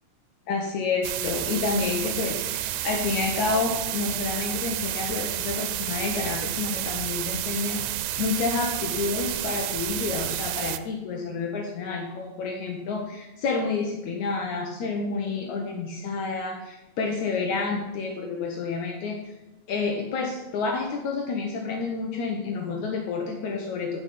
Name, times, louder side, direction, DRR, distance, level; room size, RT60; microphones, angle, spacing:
voice 1, 0.5-7.8 8.2-19.3 19.7-24.0, left 4 dB, 75° left, 2 dB, 2.4 m, -29 dB
sound 1, 1.0-10.8, right 13 dB, 90° right, 2.0 m, -30 dB
11.0 x 5.3 x 7.6 m, 1.0 s
omnidirectional pair, 3.4 m